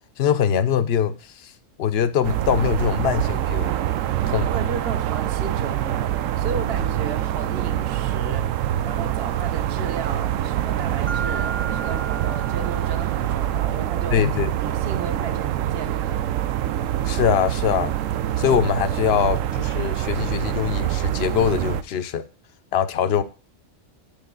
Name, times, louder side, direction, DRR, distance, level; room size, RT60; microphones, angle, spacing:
voice 1, 0.2-1.5 1.8-3.7 4.3-4.5 14.1-14.5 17.1-17.9 18.4-22.2 22.7-23.2, left 8 dB, 60° left, 0.8 m, -22 dB
sound 1, 2.2-21.8, right 12 dB, 80° right, 0.9 m, -25 dB
voice 2, 4.5-14.2 14.6-16.3, right 5 dB, 50° right, 1.2 m, -34 dB
Mallet percussion, 11.1-13.6, right 5 dB, 35° right, 0.4 m, -34 dB
8.4 x 7.0 x 3.8 m
omnidirectional pair, 1.3 m